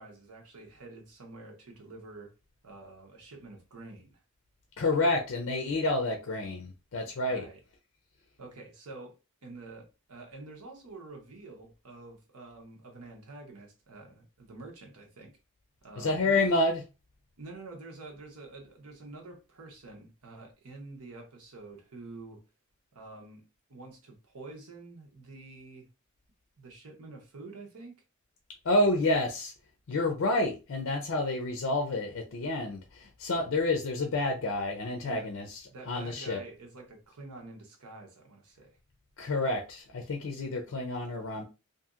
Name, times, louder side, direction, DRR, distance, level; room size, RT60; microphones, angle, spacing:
voice 1, 0.0-2.3 2.6-4.2 7.3-7.6 8.4-9.2 9.4-15.3 15.8-16.5 17.4-22.4 22.9-23.4 23.7-25.9 26.6-28.0 35.0-35.3 35.7-38.7, right 3 dB, 90° right, 0.9 m, -47 dB
voice 2, 4.8-7.5 16.0-16.8 28.6-29.5 29.9-35.6 35.9-36.4 39.2-41.4, left 2 dB, 60° left, 0.5 m, -29 dB
2.8 x 2.6 x 2.4 m
head